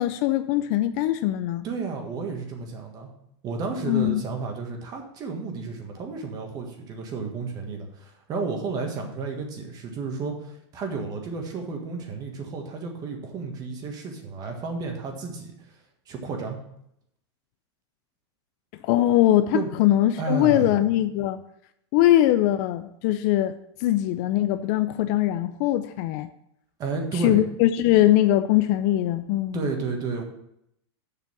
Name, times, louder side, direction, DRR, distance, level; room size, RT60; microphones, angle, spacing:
voice 1, 0.0-1.7 3.8-4.2 18.8-21.4 21.9-23.6 23.8-26.3 27.1-29.6, left 13 dB, 40° left, 11 dB, 0.4 m, -21 dB
voice 2, 1.6-3.1 3.4-15.5 16.1-16.6 19.5-19.7 20.2-20.8 26.8-27.4 29.5-30.2, right 4 dB, 25° right, 3 dB, 1.6 m, -32 dB
7.0 x 5.8 x 7.2 m, 0.76 s
supercardioid pair, 155°, 14 cm